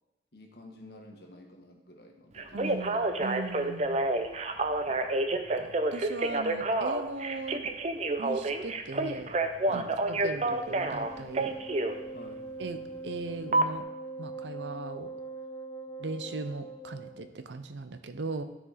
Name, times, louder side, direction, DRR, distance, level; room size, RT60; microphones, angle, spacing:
voice 1, 0.3-3.0 4.9-5.1 9.7-10.0 12.1-12.5, left 1 dB, 60° left, 2 dB, 1.3 m, -50 dB
Telephone, 2.4-12.0 13.5-13.6, right 2 dB, 40° right, 0.6 m, -29 dB
voice 2, 2.5-4.0 5.3-7.7 8.2-9.3 9.7-9.8 10.1-11.5 12.6-13.9 14.2-15.1 16.0-18.4, right 3 dB, 85° right, 9 dB, 0.7 m, -39 dB
Wind instrument woodwind instrument, 10.3-17.3, right 2 dB, 10° left, 0.5 m, -42 dB
12.0 x 4.9 x 4.1 m, 1.0 s
head